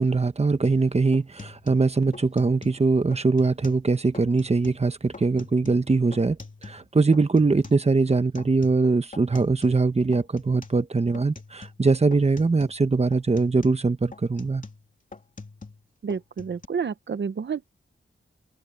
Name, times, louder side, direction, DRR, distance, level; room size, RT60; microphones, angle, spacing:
voice 1, 0.0-6.4 6.6-14.6, right 3 dB, 30° right, 1.2 m, -22 dB
sound 1, 0.6-0.8 1.1-2.8 3.1-3.9 4.1-4.8 5.1-6.9 7.1-9.9 10.1-10.8 11.1-11.9 12.1-12.8 13.1-15.8 16.1-16.7, left 3 dB, 40° left, 3.0 m, -44 dB
voice 2, 16.0-17.7, right 6 dB, 60° right, 0.8 m, -30 dB
open air
wide cardioid pair, 120°, 21 cm